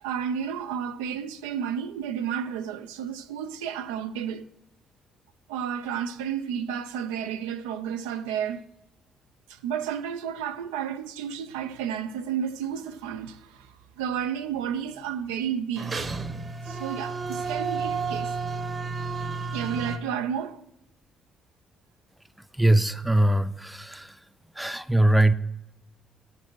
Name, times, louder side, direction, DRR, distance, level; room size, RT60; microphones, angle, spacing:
voice 1, 0.0-4.5 5.5-8.7 9.5-16.1 16.6-18.3 19.5-20.6, right 8 dB, 90° right, 0.4 m, -32 dB
sound 1, 15.8-20.0, right 4 dB, 40° right, 0.8 m, -31 dB
voice 2, 22.5-24.2 24.6-25.3, right 1 dB, 5° right, 0.5 m, -21 dB
9.6 x 6.6 x 4.5 m
hypercardioid pair, 55°, 0 cm